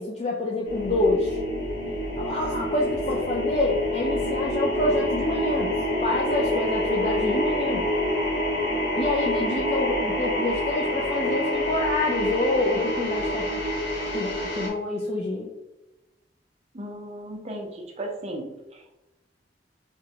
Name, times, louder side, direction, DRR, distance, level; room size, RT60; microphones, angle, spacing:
voice 1, 0.0-1.4 2.2-5.7 6.0-7.9 9.0-13.6 14.1-15.5, left 2 dB, 35° left, -2 dB, 0.4 m, -27 dB
sound 1, 0.6-14.7, left 1 dB, 80° left, 0.9 m, -27 dB
voice 2, 16.7-18.5 18.7-19.0, right 1 dB, 35° right, 1 dB, 0.5 m, -36 dB
3.9 x 2.2 x 2.7 m, 0.98 s
head